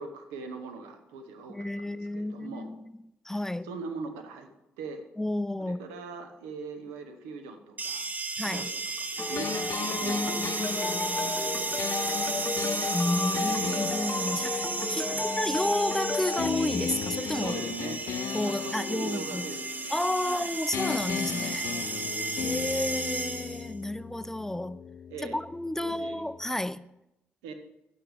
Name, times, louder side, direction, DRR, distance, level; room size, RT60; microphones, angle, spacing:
voice 1, 0.0-2.7 3.6-4.5 4.8-5.0 5.6-8.1 8.4-10.6 11.2-12.8 15.1-15.3 17.4-18.0 18.4-20.5 25.1-25.4 25.8-26.2 27.4-27.5, right 4 dB, 85° right, 0.9 m, -41 dB
voice 2, 1.5-2.9 3.2-3.7 5.2-5.8 8.4-8.7 10.0-11.2 12.9-17.6 18.3-19.5 19.9-21.7 22.4-24.8 25.2-26.9, left 1 dB, 10° left, 0.4 m, -31 dB
sound 1, 7.8-23.7, right 3 dB, 30° right, 0.9 m, -34 dB
sound 2, 9.2-16.5, left 3 dB, 30° left, 0.7 m, -33 dB
sound 3, 9.4-15.9 16.4-20.4 20.7-26.5, left 8 dB, 65° left, 0.5 m, -37 dB
10.5 x 9.1 x 3.4 m
hypercardioid pair, 45°, 5 cm